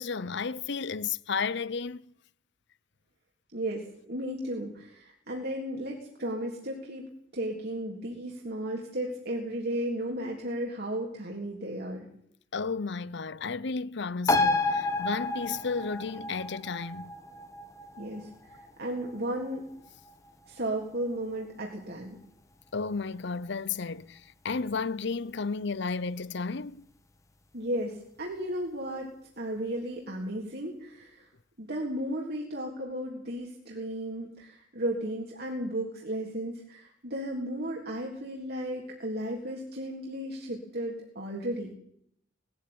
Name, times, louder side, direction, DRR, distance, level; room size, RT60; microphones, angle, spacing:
voice 1, 0.0-2.0 12.5-17.1 22.7-26.9, left 4 dB, 65° left, 0.8 m, -33 dB
voice 2, 3.5-7.1 7.3-12.1 18.0-19.6 20.5-22.2 27.5-31.3 31.6-41.7, right 1 dB, 60° right, 3.5 m, -34 dB
sound 1, 14.3-21.2 21.6-21.7, left 2 dB, 15° left, 1.5 m, -32 dB
19.5 x 14.0 x 9.7 m
head